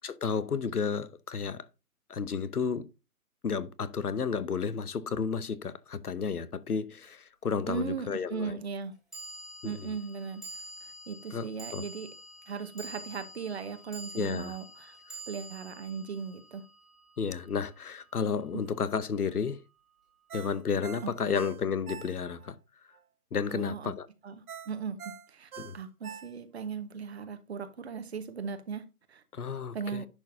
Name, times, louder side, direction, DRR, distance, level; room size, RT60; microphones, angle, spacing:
voice 1, 0.0-1.7 2.1-2.9 3.4-8.6 9.6-9.9 11.3-11.8 14.1-14.6 17.2-19.6 20.3-22.6 23.3-24.1 25.6-25.8 29.3-30.0, left 6 dB, 85° left, 0.9 m, -32 dB
sound 1, 7.0-7.1 9.1-17.5, right 1 dB, ahead, 2.0 m, -47 dB
voice 2, 7.7-8.9 9.6-10.4 10.8-12.1 12.5-15.0 15.3-16.6 18.5-18.6 21.0-21.4 23.5-23.9 24.2-29.2 29.7-30.1, right 6 dB, 45° right, 1.2 m, -38 dB
Ringtone, 20.3-22.5 22.9-23.0 24.5-26.7 27.1-27.2, right 8 dB, 75° right, 0.7 m, -45 dB
10.5 x 4.4 x 2.6 m
figure-of-eight pair, 145°, 44 cm